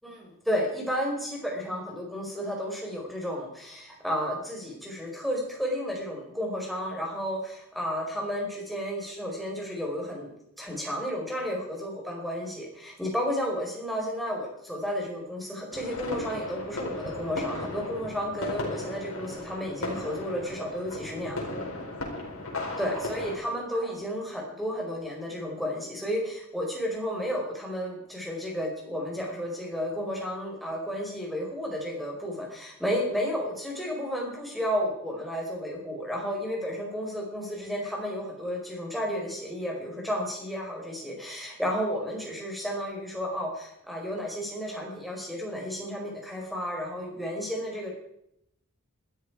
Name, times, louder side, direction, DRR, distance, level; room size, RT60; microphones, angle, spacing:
voice 1, 0.0-10.3 10.6-21.5 22.8-47.9, equal, ahead, -2 dB, 4.7 m, -32 dB
sound 1, 15.7-23.4, left 2 dB, 65° left, 4.6 m, -36 dB
20.5 x 13.0 x 4.8 m, 0.77 s
head